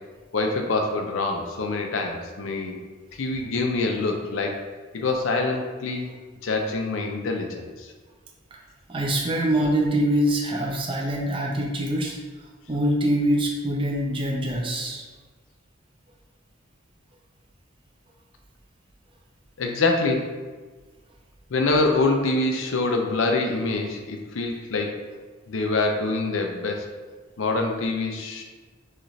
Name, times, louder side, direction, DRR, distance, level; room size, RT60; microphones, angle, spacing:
voice 1, 0.3-2.8 3.2-4.6 4.9-6.1 6.4-7.9 19.6-20.3 21.5-25.0 25.5-26.9 27.4-28.4, left 3 dB, 85° left, 2 dB, 0.5 m, -25 dB
voice 2, 8.9-12.2 12.7-15.0, right 1 dB, 25° right, -1 dB, 0.5 m, -24 dB
6.3 x 2.5 x 3.2 m, 1.4 s
head